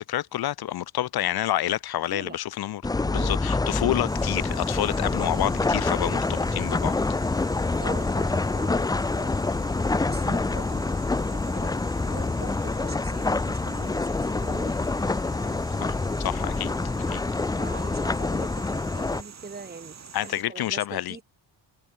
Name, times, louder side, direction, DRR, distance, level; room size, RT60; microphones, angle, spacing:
voice 1, 0.0-7.0 15.8-15.9 16.2-16.7 17.1-17.2 20.1-21.2, left 13 dB, 55° left, 0.7 m, -28 dB
sound 1, 2.8-19.2, left 3 dB, 10° left, 0.3 m, -26 dB
sound 2, 4.1-20.4, right 6 dB, 35° right, 4.5 m, -46 dB
voice 2, 7.8-10.9 11.3-11.8 12.1-15.6 17.6-21.2, right 4 dB, 20° right, 3.0 m, -42 dB
wide cardioid pair, 155°, 44 cm